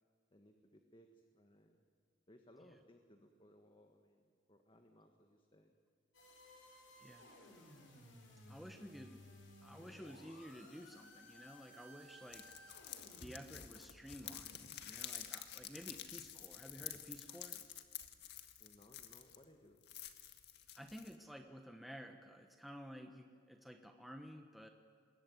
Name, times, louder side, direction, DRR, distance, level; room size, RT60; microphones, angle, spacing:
voice 1, 0.3-1.8 2.3-5.8 17.5-17.7 18.6-19.8, left 1 dB, 25° left, 5 dB, 1.6 m, -64 dB
sound 1, 6.1-13.4, left 1 dB, 80° left, 6.9 m, -59 dB
voice 2, 7.0-7.3 8.5-9.3 9.6-12.5 13.2-17.6 20.7-24.7, equal, ahead, 4 dB, 1.1 m, -53 dB
sound 2, 12.3-19.4 19.8-21.2, left 10 dB, 60° left, 1.8 m, -50 dB
26.5 x 21.5 x 9.4 m, 2.2 s
head